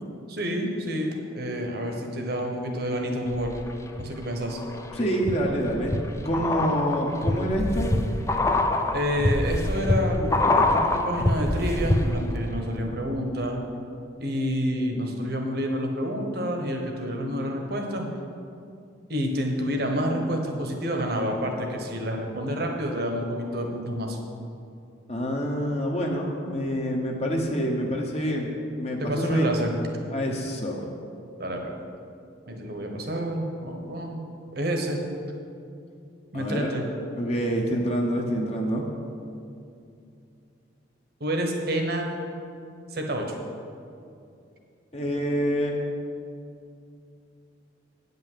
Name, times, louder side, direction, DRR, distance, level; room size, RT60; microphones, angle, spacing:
voice 1, 0.3-3.5 4.0-4.6 6.6-6.7 8.9-13.6 14.2-18.0 19.1-24.2 29.0-29.7 31.4-31.7 32.5-34.2 34.5-35.0 36.3-36.8 41.2-42.1 42.9-43.3, equal, 50° right, 2 dB, 1.2 m, -28 dB
sound 1, 3.3-4.0 4.5-12.4 12.6-12.7, left 2 dB, 15° left, 0.4 m, -25 dB
voice 2, 4.9-7.9 25.1-29.5 30.1-30.9 36.3-36.8 37.2-38.8 44.9-45.8, equal, 30° left, 0 dB, 0.9 m, -27 dB
8.9 x 5.4 x 7.4 m, 2.6 s
head